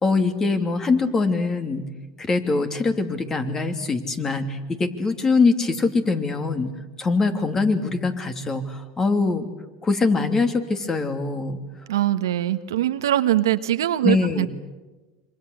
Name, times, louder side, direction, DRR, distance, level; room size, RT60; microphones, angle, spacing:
voice 1, 0.0-1.8 2.2-6.7 7.0-9.5 9.8-11.6 14.0-14.5, left 3 dB, 25° left, 8 dB, 2.9 m, -23 dB
voice 2, 11.9-14.5, right 13 dB, 90° right, 10 dB, 1.4 m, -22 dB
26.5 x 25.0 x 8.2 m, 1.2 s
supercardioid pair, 110°, 2 cm